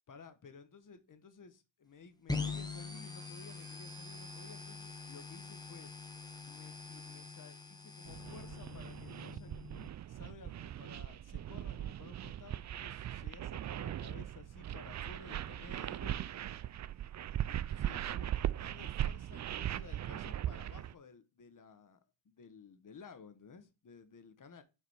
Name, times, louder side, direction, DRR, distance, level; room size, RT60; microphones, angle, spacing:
voice 1, 0.1-5.9 6.4-9.5 10.1-16.2 17.5-22.0 22.2-24.6, left 5 dB, 40° left, 1.4 m, -55 dB
sound 1, 2.3-9.9, left 3 dB, 10° left, 1.2 m, -43 dB
sound 2, 8.1-20.9, right 11 dB, 40° right, 0.4 m, -39 dB
5.5 x 4.9 x 6.3 m
cardioid pair, 85°, 48 cm